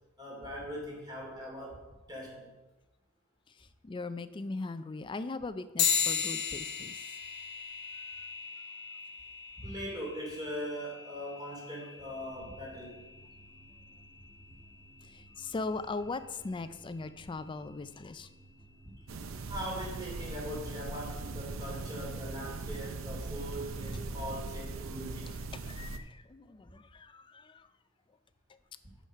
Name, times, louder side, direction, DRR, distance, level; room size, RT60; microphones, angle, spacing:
voice 1, 0.2-2.5 9.6-13.0 19.5-25.4, equal, 20° right, -3 dB, 2.8 m, -40 dB
voice 2, 3.5-7.0 7.9-8.3 15.0-18.3 25.5-27.7, left 3 dB, 25° left, 12 dB, 0.4 m, -40 dB
sound 1, 5.8-15.6, left 7 dB, 55° left, 0.9 m, -37 dB
sound 2, 12.0-22.0, right 2 dB, 5° left, 1.3 m, -58 dB
sound 3, 19.1-26.0, right 3 dB, 85° right, 0.6 m, -40 dB
6.4 x 6.3 x 5.6 m, 1.1 s
head